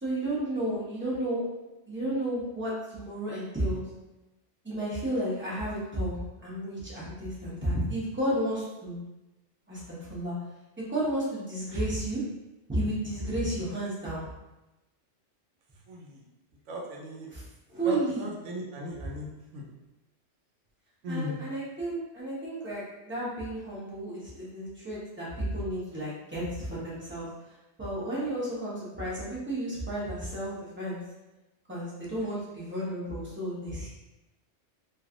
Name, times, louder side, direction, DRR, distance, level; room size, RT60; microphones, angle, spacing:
voice 1, 0.0-1.4 1.9-3.8 4.6-9.0 9.7-10.4 10.8-12.2 12.7-14.3 17.3-17.4 17.7-18.3 21.1-27.3 27.8-31.0 31.7-33.9, right 1 dB, 10° right, -8 dB, 0.8 m, -32 dB
voice 2, 15.9-16.2 16.7-17.3 17.8-19.7 21.0-21.4, equal, 90° right, -1 dB, 0.9 m, -37 dB
3.1 x 2.5 x 2.4 m, 1.0 s
omnidirectional pair, 1.2 m